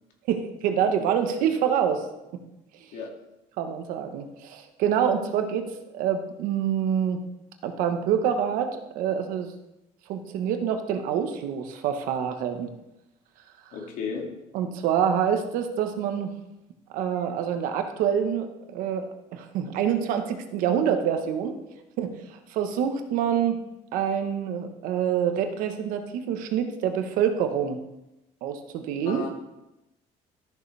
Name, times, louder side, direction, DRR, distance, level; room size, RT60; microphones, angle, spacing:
voice 1, 0.3-2.1 3.6-7.2 7.6-9.5 10.1-12.7 13.7-13.8 14.5-16.3 16.9-21.6 22.0-23.6 23.9-27.8 28.4-29.2, right 8 dB, 85° right, 7 dB, 1.2 m, -26 dB
voice 2, 13.7-14.3 29.0-29.3, left 5 dB, 75° left, 1 dB, 2.4 m, -33 dB
13.5 x 6.9 x 3.4 m, 0.93 s
cardioid pair, 120°, 14 cm